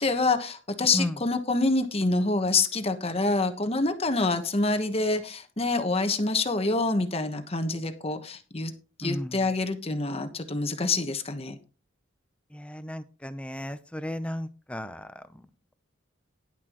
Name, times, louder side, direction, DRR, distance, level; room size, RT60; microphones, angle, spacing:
voice 1, 0.0-8.7 9.0-11.5, left 3 dB, 30° left, 7 dB, 1.2 m, -26 dB
voice 2, 9.0-9.4 12.5-15.2, equal, 5° left, 11 dB, 0.7 m, -34 dB
11.0 x 10.0 x 3.0 m, 0.35 s
head